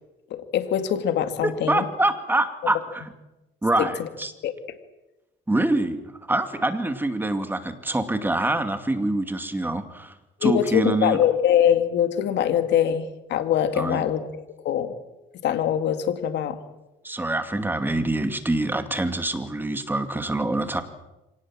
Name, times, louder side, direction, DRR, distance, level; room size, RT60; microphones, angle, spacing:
voice 1, 0.3-1.8 3.8-4.1 4.4-4.5 10.4-14.3 14.6-14.9 15.4-16.6, left 10 dB, 70° left, 9 dB, 2.3 m, -23 dB
voice 2, 1.4-3.0 3.6-4.3 5.5-6.0 6.3-10.1 10.4-11.2 13.8-14.0 17.0-20.8, right 2 dB, 10° right, 8 dB, 2.4 m, -25 dB
25.5 x 18.5 x 7.6 m, 0.99 s
cardioid pair, 105°, 19 cm